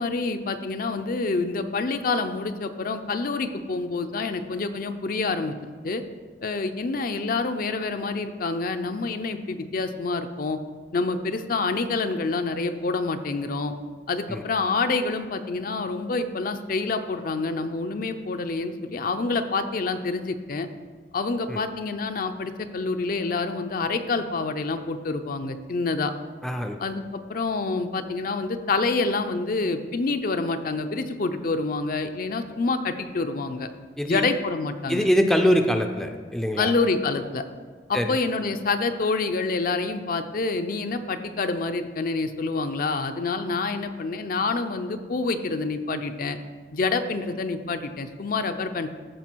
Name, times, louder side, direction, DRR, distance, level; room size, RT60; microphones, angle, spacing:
voice 1, 0.0-6.0 6.4-10.6 10.9-13.7 14.1-20.7 21.1-26.1 26.8-33.7 34.0-35.1 36.6-37.4 37.9-46.4 46.7-48.9, left 3 dB, 50° left, 8 dB, 0.5 m, -27 dB
voice 2, 26.4-26.8 34.0-34.3 34.9-36.7 37.9-38.1, equal, ahead, 5 dB, 0.5 m, -23 dB
14.5 x 4.8 x 4.5 m, 1.5 s
head